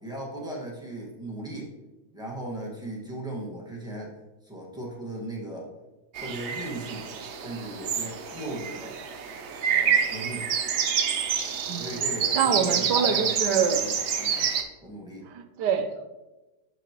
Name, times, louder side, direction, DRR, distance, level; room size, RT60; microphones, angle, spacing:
voice 1, 0.0-1.7 2.1-4.1 4.4-5.7 6.1-7.1 7.4-8.9 9.7-10.5 11.8-13.4 13.8-14.5 14.8-15.3, right 1 dB, ahead, -3 dB, 1.6 m, -37 dB
sound 1, 6.1-14.6, right 7 dB, 60° right, 0.7 m, -28 dB
voice 2, 12.3-13.8 15.3-16.0, right 7 dB, 80° right, 8 dB, 1.3 m, -25 dB
11.5 x 4.7 x 3.0 m, 1.1 s
omnidirectional pair, 1.8 m